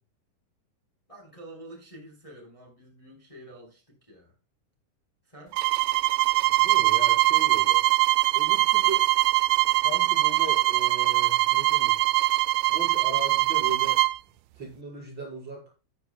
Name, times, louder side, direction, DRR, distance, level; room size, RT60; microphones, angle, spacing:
voice 1, 1.1-4.4 5.2-5.6, right 1 dB, 10° left, 0 dB, 3.7 m, -48 dB
sound 1, 5.5-14.2, right 20 dB, 90° right, 1.5 m, -22 dB
voice 2, 6.4-9.1 9.7-12.0 12.7-14.0 14.5-15.7, right 2 dB, 35° right, -3 dB, 5.5 m, -38 dB
13.0 x 9.9 x 2.2 m, 0.30 s
omnidirectional pair, 3.7 m